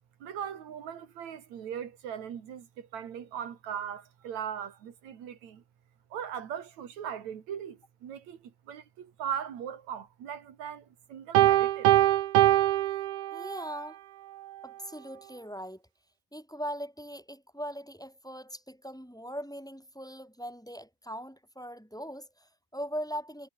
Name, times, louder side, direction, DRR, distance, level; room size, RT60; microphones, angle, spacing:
voice 1, 0.2-5.6 6.1-11.9, right 8 dB, 65° right, 3.4 m, -39 dB
Piano, 11.4-13.7, right 14 dB, 80° right, 2.5 m, -23 dB
voice 2, 13.3-14.0 14.6-15.8 16.3-23.5, equal, ahead, 5.5 m, -40 dB
omnidirectional pair, 3.5 m